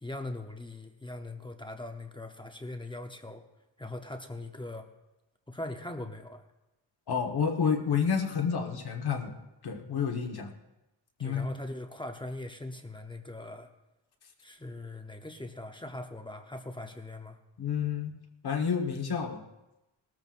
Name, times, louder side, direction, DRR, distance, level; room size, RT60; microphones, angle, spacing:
voice 1, 0.0-3.4 3.8-4.9 5.5-6.4 11.2-13.7 14.4-17.4, left 2 dB, 10° left, 4 dB, 0.7 m, -40 dB
voice 2, 7.1-9.3 9.6-10.5 11.2-11.5 17.6-18.1 18.4-19.4, left 6 dB, 55° left, 4 dB, 1.4 m, -29 dB
19.5 x 13.5 x 2.5 m, 0.96 s
wide cardioid pair, 165°, 46 cm